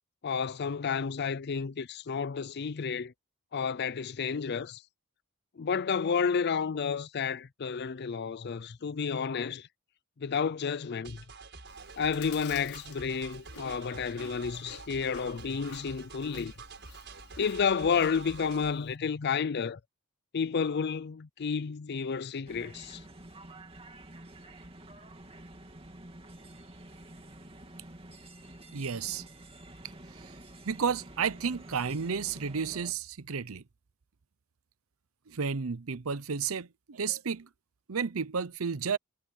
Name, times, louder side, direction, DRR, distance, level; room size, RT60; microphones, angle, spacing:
voice 1, 0.2-3.1 3.5-4.8 5.6-9.7 10.2-11.2 12.0-16.5 17.4-19.8 20.3-23.0, left 6 dB, 50° left, 0.5 m, -31 dB
sound 1, 11.0-18.7, right 4 dB, 55° right, 6.2 m, -48 dB
Chewing mastication, 11.7-19.0, left 6 dB, 85° left, 4.9 m, -52 dB
sound 2, 22.5-32.9, right 1 dB, 25° right, 2.9 m, -49 dB
voice 2, 28.7-29.2 30.2-30.3 30.7-33.6 35.3-37.5 37.9-39.0, right 6 dB, 75° right, 0.7 m, -32 dB
head